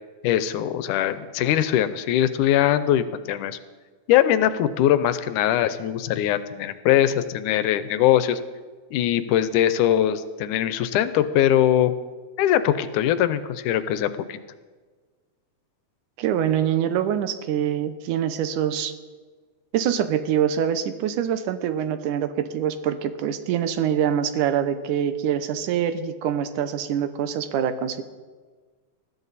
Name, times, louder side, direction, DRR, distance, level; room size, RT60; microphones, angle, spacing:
voice 1, 0.2-3.6 4.1-8.4 8.9-11.9 12.4-14.4, left 11 dB, 85° left, 13 dB, 2.2 m, -21 dB
voice 2, 16.2-18.9 19.7-28.0, right 9 dB, 80° right, 10 dB, 2.4 m, -24 dB
20.5 x 13.5 x 4.1 m, 1.4 s
omnidirectional pair, 3.6 m